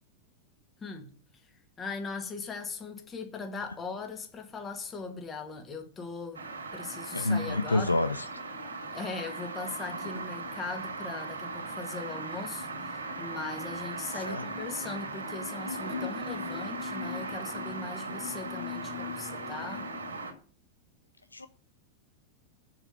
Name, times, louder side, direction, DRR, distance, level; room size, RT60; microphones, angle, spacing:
voice 1, 0.8-1.1 1.4-1.5 1.8-6.5 6.7-8.0 8.9-19.9, left 4 dB, 20° left, 2.1 m, -39 dB
sound 1, 6.3-20.3, right 2 dB, 70° right, 2.8 m, -38 dB
voice 2, 7.1-8.2 14.3-14.4 21.3-21.5, left 2 dB, 80° left, 0.5 m, -27 dB
7.4 x 7.0 x 7.9 m
figure-of-eight pair, 90°, 0 cm